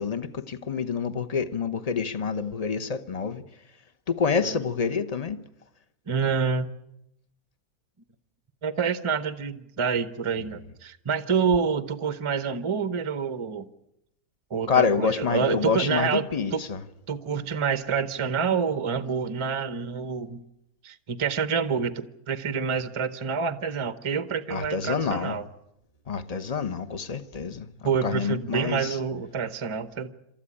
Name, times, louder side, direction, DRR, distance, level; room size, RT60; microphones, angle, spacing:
voice 1, 0.0-3.4 4.1-5.4 14.7-16.8 24.5-25.4 26.1-27.7 28.0-29.0, left 5 dB, 30° left, 0.8 m, -27 dB
voice 2, 6.1-6.7 8.6-13.7 14.5-16.3 16.5-16.6 17.1-20.4 20.8-25.5 27.8-30.1, right 6 dB, 25° right, 0.7 m, -27 dB
28.0 x 13.5 x 9.9 m
omnidirectional pair, 1.8 m